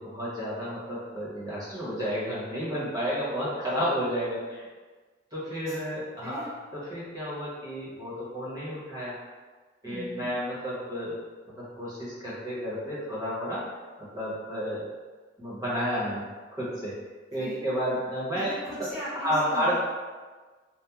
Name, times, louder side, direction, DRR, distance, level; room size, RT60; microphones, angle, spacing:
voice 1, 0.0-4.6 5.3-6.5 6.9-9.1 9.8-11.1 11.5-14.9 15.4-16.2 16.5-17.0 17.3-18.5 19.2-19.8, equal, 20° right, -9 dB, 0.8 m, -31 dB
voice 2, 6.2-6.5 9.8-10.3 17.4-17.6 18.3-19.8, equal, ahead, -13 dB, 0.4 m, -38 dB
2.8 x 2.0 x 2.3 m, 1.4 s
head